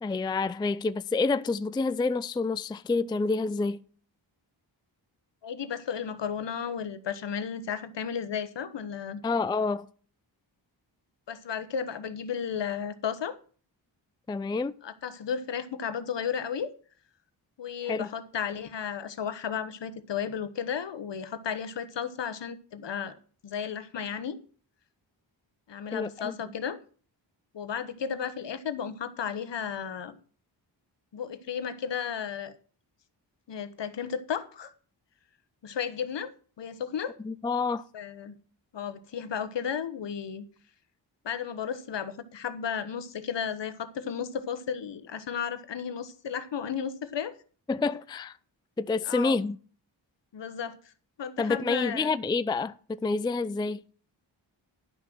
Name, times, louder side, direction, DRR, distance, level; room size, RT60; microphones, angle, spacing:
voice 1, 0.0-3.8 9.2-9.9 14.3-14.8 17.8-18.1 25.9-26.4 37.2-37.9 47.7-48.4 48.8-49.6 51.4-53.8, left 4 dB, 10° left, 0.4 m, -28 dB
voice 2, 5.4-9.2 11.3-13.4 14.8-16.7 17.6-23.1 23.4-24.4 25.7-26.8 27.5-30.2 31.1-32.6 33.5-34.7 35.6-37.1 37.9-38.3 38.7-40.4 41.2-47.3 49.1-49.4 50.3-50.8 51.2-52.1, left 7 dB, 65° left, 1.2 m, -34 dB
10.5 x 6.2 x 6.1 m
cardioid pair, 50°, 47 cm